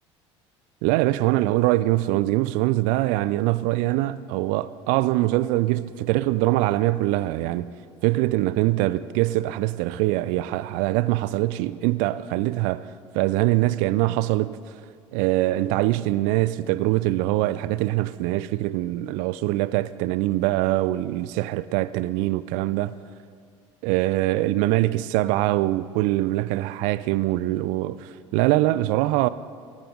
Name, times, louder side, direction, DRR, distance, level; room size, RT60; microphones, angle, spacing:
voice 1, 0.8-7.7 8.0-12.9 13.1-14.6 15.1-22.9 23.8-29.3, right 17 dB, 60° right, 0.5 m, -23 dB
19.0 x 14.0 x 3.8 m
figure-of-eight pair, 60°, 16 cm